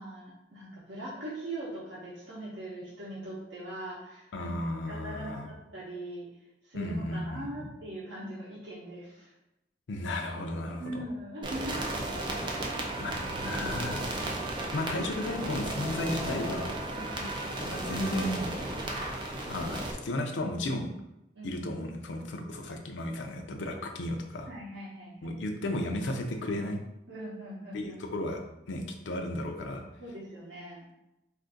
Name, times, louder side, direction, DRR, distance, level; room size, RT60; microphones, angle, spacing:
voice 1, 0.0-4.5 4.9-6.3 6.6-9.3 10.8-11.8 13.0-13.2 16.9-17.5 21.3-21.8 24.5-25.3 27.1-28.0 30.0-30.9, right 1 dB, 80° right, -7 dB, 0.7 m, -41 dB
voice 2, 4.3-5.5 6.7-7.7 9.9-11.0 13.0-14.0 14.7-16.8 17.6-18.5 19.5-20.9 21.4-24.5 25.2-26.8 27.7-28.4 28.7-29.8, left 1 dB, 85° left, 4 dB, 0.5 m, -34 dB
sound 1, 11.4-19.9, right 1 dB, 25° right, 0.4 m, -34 dB
2.5 x 2.5 x 3.7 m, 0.90 s
head